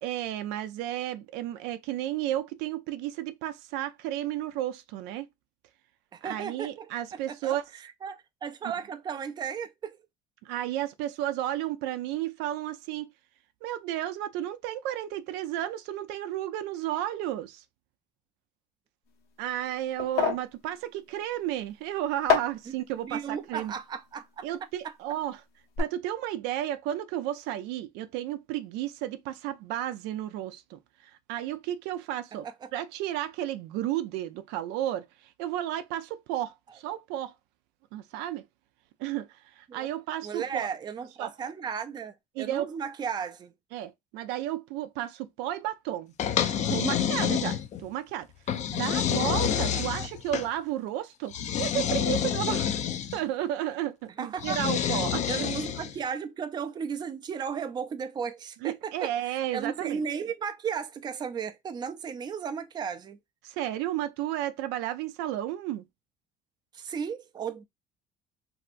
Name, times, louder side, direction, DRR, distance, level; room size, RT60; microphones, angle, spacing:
voice 1, 0.0-5.3 6.2-7.6 10.4-13.1 13.6-17.6 19.4-23.7 24.4-25.4 25.8-32.5 32.7-37.3 37.9-38.4 39.0-40.7 41.2-41.3 42.3-42.7 43.7-46.1 46.7-48.3 48.7-51.3 51.6-52.8 53.1-55.5 58.6-60.0 63.4-65.9, right 12 dB, 90° right, 0.5 m, -33 dB
voice 2, 6.1-10.0 22.7-22.8 23.0-24.5 24.8-24.9 32.4-32.7 39.7-39.9 40.2-43.5 49.5-50.1 54.2-54.6 55.3-63.2 66.7-67.6, right 7 dB, 25° right, 0.4 m, -35 dB
sound 1, 19.1-25.3 25.5-25.8, left 6 dB, 75° left, 1.1 m, -32 dB
sound 2, 46.2-47.9 48.5-50.5 51.3-53.2 54.4-56.0, left 9 dB, 45° left, 0.4 m, -28 dB
3.3 x 2.7 x 2.4 m
cardioid pair, 130°, 17 cm